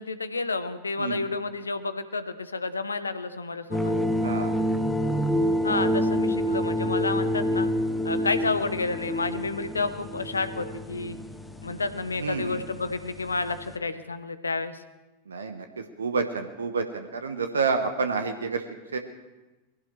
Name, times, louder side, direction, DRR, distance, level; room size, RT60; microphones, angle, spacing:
voice 1, 0.0-3.9 5.6-7.7 8.0-11.2 11.6-14.8, left 3 dB, 75° left, 12 dB, 0.8 m, -30 dB
sound 1, 3.7-13.8, equal, 5° left, 0.8 m, -28 dB
voice 2, 4.2-4.6 5.7-5.9 12.2-12.6 15.3-15.7 16.0-18.6 18.9-19.0, right 4 dB, 70° right, 7 dB, 1.0 m, -29 dB
21.5 x 16.0 x 3.3 m, 1.1 s
figure-of-eight pair, 90°, 0 cm